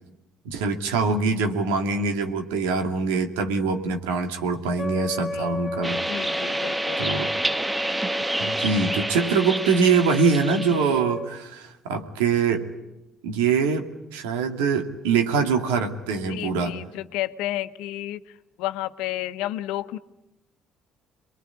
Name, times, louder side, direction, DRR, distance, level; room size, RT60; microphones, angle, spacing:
voice 1, 0.4-6.0 7.0-7.3 8.4-12.7 13.2-16.7, right 5 dB, 90° right, 6 dB, 2.4 m, -24 dB
Wind instrument woodwind instrument, 4.8-11.3, left 1 dB, 20° left, 1.7 m, -33 dB
voice 2, 5.3-5.6 6.1-7.0 16.3-20.0, left 15 dB, 80° left, 11 dB, 1.0 m, -32 dB
sound 1, 5.8-11.0, right 1 dB, 15° right, 1.3 m, -29 dB
27.5 x 22.0 x 9.8 m, 0.96 s
hypercardioid pair, 60°, 0 cm